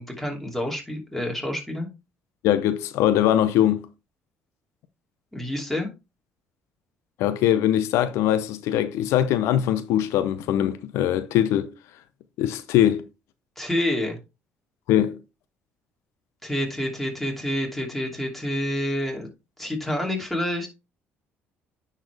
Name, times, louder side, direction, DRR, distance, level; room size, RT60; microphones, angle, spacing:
voice 1, 0.0-1.9 5.3-5.9 13.6-14.2 16.4-19.3 19.6-20.7, left 1 dB, 5° left, 2.7 m, -28 dB
voice 2, 2.4-3.8 7.2-11.7 12.4-13.0 14.9-15.2, left 11 dB, 80° left, 0.6 m, -21 dB
9.9 x 4.3 x 3.3 m
cardioid pair, 100°, 5 cm